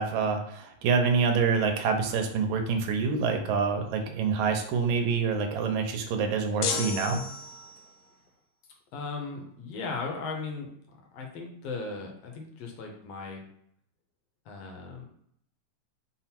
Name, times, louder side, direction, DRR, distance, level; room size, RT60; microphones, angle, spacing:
voice 1, 0.0-7.2, right 5 dB, 85° right, 5 dB, 2.0 m, -26 dB
sound 1, 6.6-8.0, left 5 dB, 90° left, 2.1 m, -32 dB
voice 2, 8.9-10.7 11.1-13.4 14.5-15.1, left 4 dB, 70° left, 1 dB, 1.7 m, -37 dB
5.5 x 2.0 x 4.3 m, 0.70 s
omnidirectional pair, 3.3 m